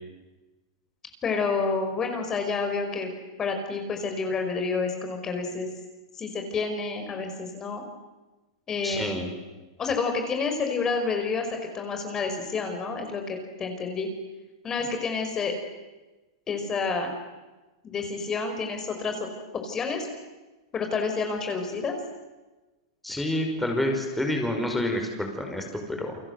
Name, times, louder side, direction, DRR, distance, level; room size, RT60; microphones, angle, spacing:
voice 1, 1.2-3.1 3.4-5.7 6.2-7.8 8.7-9.2 9.8-11.5 11.7-14.1 14.6-15.5 16.5-17.1 17.8-19.3 19.5-20.1 20.7-22.0, left 4 dB, 25° left, 5 dB, 5.2 m, -29 dB
voice 2, 8.8-9.3 23.0-26.2, left 1 dB, 5° left, 2 dB, 5.3 m, -28 dB
30.0 x 24.0 x 8.1 m, 1.2 s
hypercardioid pair, 125°, 2 cm